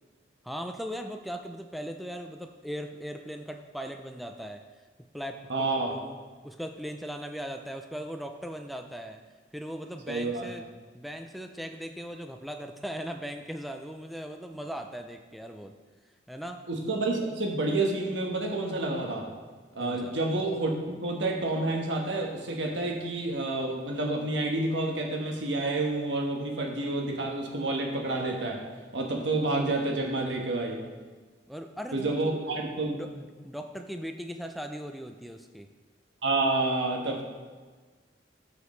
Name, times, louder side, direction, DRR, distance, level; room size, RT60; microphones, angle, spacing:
voice 1, 0.4-4.6 5.1-6.2 6.4-9.2 9.5-10.6 10.9-15.7 16.3-16.6 19.8-20.2 31.5-32.6 32.9-35.7, equal, ahead, 5 dB, 0.3 m, -39 dB
voice 2, 5.5-5.9 10.1-10.5 16.7-19.3 19.7-28.6 28.9-30.8 31.9-33.0 36.2-37.2, right 2 dB, 90° right, 1 dB, 1.3 m, -29 dB
13.0 x 4.9 x 3.2 m, 1.4 s
head